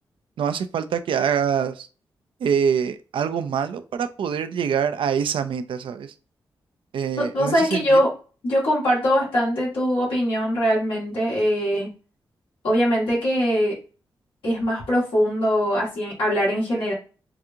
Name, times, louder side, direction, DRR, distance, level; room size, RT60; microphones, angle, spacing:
voice 1, 0.4-1.9 2.4-6.1 6.9-8.0, right 7 dB, 75° right, 10 dB, 0.4 m, -25 dB
voice 2, 7.2-8.1 8.4-11.9 12.6-13.8 14.4-16.9, equal, 90° left, -6 dB, 2.1 m, -22 dB
4.7 x 2.4 x 2.7 m, 0.36 s
cardioid pair, 50°, 9 cm